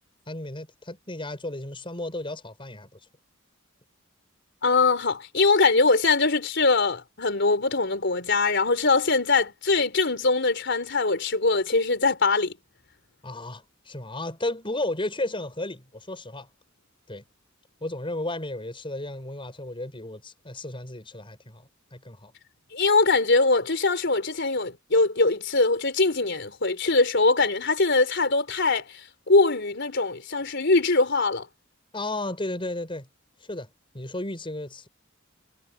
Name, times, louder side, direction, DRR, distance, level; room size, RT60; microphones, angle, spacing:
voice 1, 0.3-2.9 13.2-16.5 17.1-17.2 17.8-22.3 31.9-33.1 33.4-33.7 33.9-34.9, left 2 dB, 25° left, 5.6 m, -33 dB
voice 2, 4.6-12.5 22.7-28.9 29.3-31.5, left 3 dB, 60° left, 3.9 m, -22 dB
head